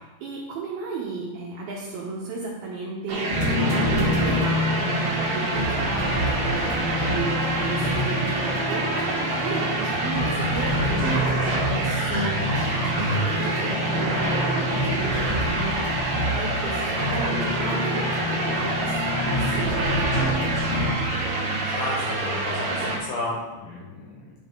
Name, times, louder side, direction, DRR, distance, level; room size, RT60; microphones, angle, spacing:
voice 1, 0.0-20.0, right 4 dB, 75° right, -3 dB, 2.3 m, -34 dB
sound 1, 3.1-23.0, right 2 dB, 55° right, 2.3 m, -27 dB
sound 2, 3.3-20.9, left 1 dB, 45° left, 0.9 m, -27 dB
voice 2, 21.6-24.3, left 2 dB, 75° left, -4 dB, 2.2 m, -32 dB
11.0 x 5.5 x 3.7 m, 1.3 s
omnidirectional pair, 5.3 m